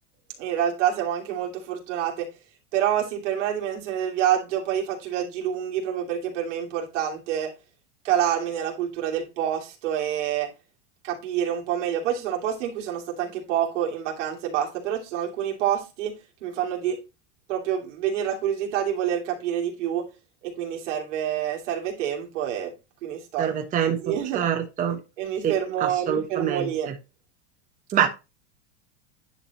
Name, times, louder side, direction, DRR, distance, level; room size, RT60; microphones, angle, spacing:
voice 1, 0.4-2.3 2.7-7.5 8.0-10.5 11.0-16.1 16.4-17.0 17.5-20.1 20.4-22.7 23.0-24.4 25.2-26.9, right 10 dB, 85° right, 2.9 m, -27 dB
voice 2, 23.4-25.0 25.4-25.5 26.1-26.9 27.9-28.1, right 9 dB, 20° right, 0.9 m, -25 dB
10.5 x 4.9 x 3.0 m
supercardioid pair, 150°, 35 cm